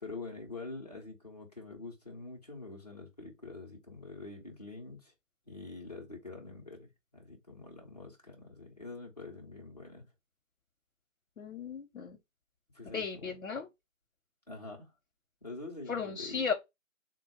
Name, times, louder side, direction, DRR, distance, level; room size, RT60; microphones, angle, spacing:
voice 1, 0.0-5.1 5.5-10.1 12.7-13.3 14.5-14.9 15.4-16.5, left 3 dB, 30° left, 0.7 m, -45 dB
voice 2, 11.4-12.2 12.8-13.7 15.9-16.5, left 6 dB, 80° left, 0.7 m, -35 dB
3.3 x 2.2 x 3.5 m
figure-of-eight pair, 160°, 41 cm